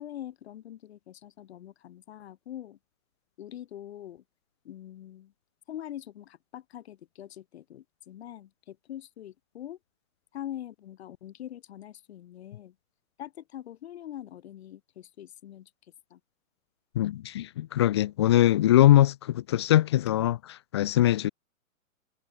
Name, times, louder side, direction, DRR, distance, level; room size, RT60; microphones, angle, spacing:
voice 1, 0.0-2.8 3.4-4.2 4.6-5.3 5.7-9.8 10.3-12.7 13.2-15.7 16.1-16.2, left 11 dB, 45° left, 7.3 m, -43 dB
voice 2, 17.0-21.3, left 13 dB, 20° left, 0.5 m, -22 dB
figure-of-eight pair, 115°, 42 cm